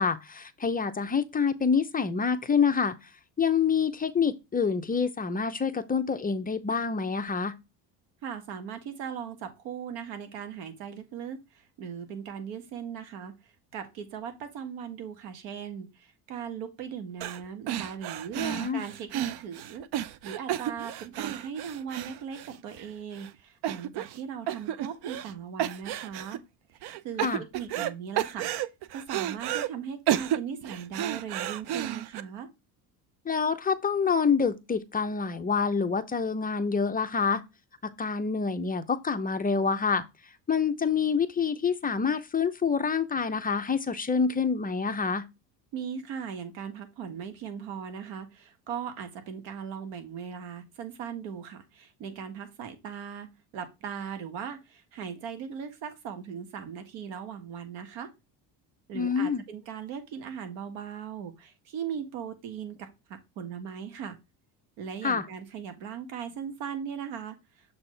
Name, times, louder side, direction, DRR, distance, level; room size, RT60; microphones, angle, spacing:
voice 1, 0.0-3.0 3.4-7.5 18.4-18.8 27.2-27.4 33.3-37.4 37.8-40.0 40.5-45.2 58.9-59.4 65.0-65.2, left 5 dB, 20° left, 0.7 m, -27 dB
voice 2, 8.2-19.9 20.2-26.4 27.0-28.5 28.9-32.5 45.7-58.1 58.9-64.2 64.8-67.8, right 7 dB, 85° right, 1.7 m, -39 dB
sound 1, 17.2-17.4 17.7-22.8 23.2-23.3 23.6-24.2 24.5-25.3 25.6-26.4 26.8-27.9 28.2-29.7 30.1-32.2, right 12 dB, 60° right, 0.7 m, -32 dB
7.0 x 4.1 x 3.3 m
cardioid pair, 110°, 44 cm